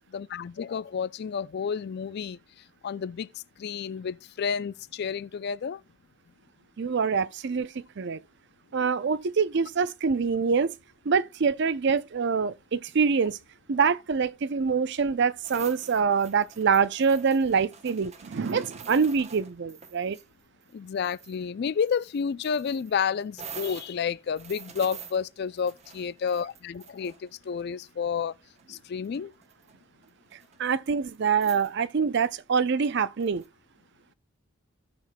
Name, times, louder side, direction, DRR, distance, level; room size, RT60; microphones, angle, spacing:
voice 1, 0.0-2.4 2.8-5.8 20.7-28.3 28.7-29.3, left 6 dB, 50° left, 0.3 m, -30 dB
voice 2, 6.8-8.2 8.7-10.7 11.1-13.4 13.7-20.2 30.6-33.4, right 5 dB, 55° right, 0.5 m, -25 dB
sound 1, 15.4-20.2 20.6-21.4 21.9-27.6 28.6-28.7 29.0-29.7 30.0-30.6 31.1-31.2 31.4-31.7 32.7-33.5, right 7 dB, 35° right, 0.9 m, -46 dB
15.5 x 5.9 x 2.2 m
head